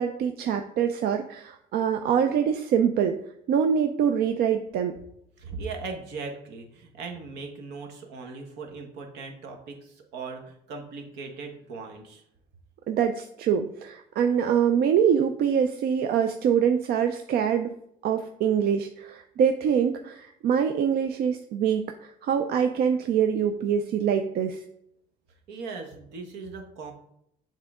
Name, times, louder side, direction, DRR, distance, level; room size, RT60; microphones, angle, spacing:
voice 1, 0.0-3.2 3.5-4.9 12.9-17.7 18.0-24.6, right 8 dB, 65° right, 6 dB, 0.4 m, -24 dB
voice 2, 5.4-12.2 25.5-26.9, right 4 dB, 85° right, 3 dB, 1.1 m, -39 dB
7.4 x 3.7 x 3.6 m, 0.74 s
cardioid pair, 110°, 17 cm